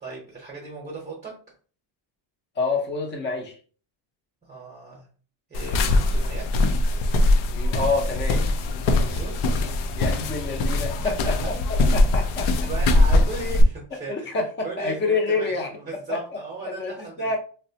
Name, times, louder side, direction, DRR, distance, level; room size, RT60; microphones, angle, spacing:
voice 1, 0.0-1.3 4.4-5.1 5.5-6.7 8.9-9.4 10.9-11.5 12.4-14.3 14.6-17.4, right 3 dB, 15° right, -3 dB, 0.7 m, -37 dB
voice 2, 2.6-3.6 7.5-8.4 9.9-11.1 11.9-12.7 14.1-15.7 16.1-16.2 16.6-16.9 17.2-17.4, left 3 dB, 25° left, 1 dB, 0.6 m, -27 dB
sound 1, 5.5-13.6, left 2 dB, 85° left, 0.6 m, -22 dB
3.9 x 2.2 x 2.7 m, 0.40 s
cardioid pair, 175°, 46 cm